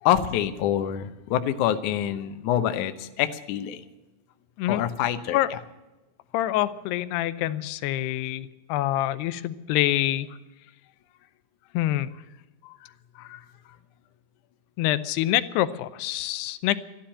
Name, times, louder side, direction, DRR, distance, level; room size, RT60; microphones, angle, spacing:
voice 1, 0.0-3.8 4.7-5.6 12.6-12.8 13.2-13.5, left 11 dB, 75° left, 9 dB, 1.9 m, -26 dB
voice 2, 6.3-10.3 11.7-12.1 14.8-16.8, left 14 dB, 90° left, 14 dB, 2.8 m, -26 dB
13.0 x 11.5 x 8.6 m, 1.1 s
omnidirectional pair, 4.6 m